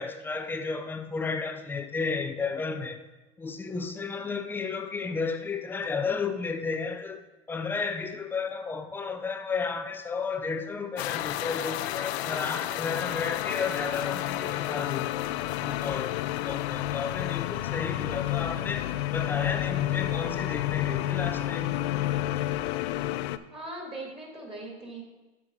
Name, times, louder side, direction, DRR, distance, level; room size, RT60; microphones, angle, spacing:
voice 1, 0.0-3.0 3.4-15.1 15.6-16.2 16.4-21.8, left 5 dB, 5° left, 0.3 m, -33 dB
sound 1, 11.0-23.4, left 14 dB, 65° left, 0.5 m, -30 dB
voice 2, 23.5-25.0, right 2 dB, 15° right, 2.1 m, -40 dB
12.0 x 4.6 x 3.8 m
hypercardioid pair, 120°, 35 cm